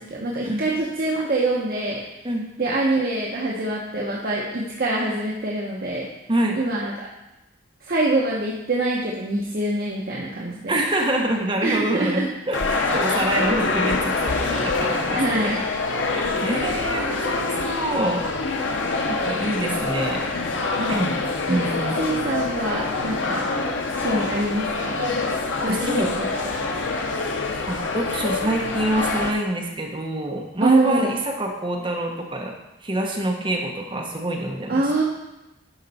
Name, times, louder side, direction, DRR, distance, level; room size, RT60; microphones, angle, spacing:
voice 1, 0.0-2.0 2.6-6.1 6.6-7.1 7.8-10.7 11.6-12.3 15.1-15.6 20.7-21.0 21.5-21.6 22.0-23.4 23.9-25.0 25.6-26.1 26.4-26.9 30.6-31.1 34.7-35.0, right 2 dB, 50° right, -3 dB, 0.8 m, -25 dB
voice 2, 6.3-6.6 10.7-15.6 16.1-18.6 19.1-20.2 20.9-21.1 21.5-22.0 25.7-26.1 27.7-32.5 32.8-34.8, right 1 dB, 25° right, 0 dB, 1.0 m, -26 dB
sound 1, 12.5-29.3, left 3 dB, 85° left, 0.8 m, -25 dB
11.0 x 4.4 x 4.1 m, 0.98 s
head